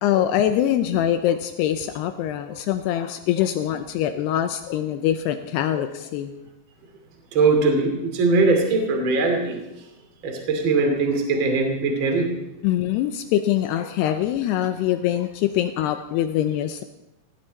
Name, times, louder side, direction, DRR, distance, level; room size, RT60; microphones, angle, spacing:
voice 1, 0.0-6.3 12.6-16.8, left 11 dB, 80° left, 9 dB, 2.5 m, -23 dB
voice 2, 7.3-9.6 10.2-12.3, right 3 dB, 35° right, 3 dB, 2.6 m, -21 dB
17.5 x 17.0 x 4.1 m, 0.93 s
omnidirectional pair, 5.2 m